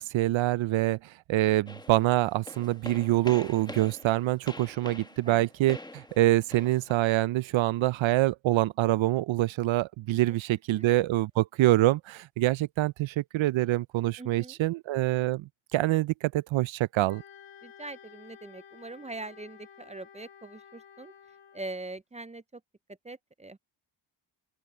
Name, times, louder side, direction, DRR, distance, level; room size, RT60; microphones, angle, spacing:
voice 1, 0.0-17.2, right 16 dB, 70° right, 0.7 m, -26 dB
sound 1, 1.7-6.9, left 2 dB, 10° left, 1.1 m, -45 dB
voice 2, 14.2-14.6 17.6-21.1 21.5-22.6 23.0-23.6, right 2 dB, 15° right, 0.5 m, -42 dB
Wind instrument woodwind instrument, 17.1-21.9, left 8 dB, 75° left, 4.4 m, -53 dB
open air
cardioid pair, 70°, 48 cm